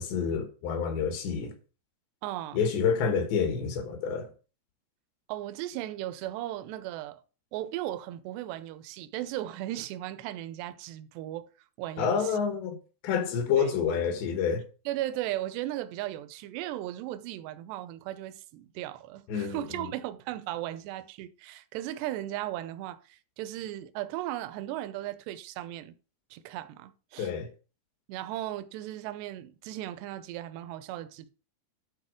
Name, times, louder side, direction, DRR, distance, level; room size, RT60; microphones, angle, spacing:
voice 1, 0.0-1.5 2.5-4.3 12.0-12.8 13.0-14.6 19.3-19.9 27.2-27.5, left 6 dB, 70° left, 3.5 m, -28 dB
voice 2, 2.2-2.6 5.3-7.2 7.5-11.5 11.8-12.3 13.6-13.7 14.9-25.9 26.3-27.3 28.1-31.3, right 14 dB, 80° right, 2.5 m, -36 dB
12.5 x 4.3 x 6.3 m
omnidirectional pair, 5.3 m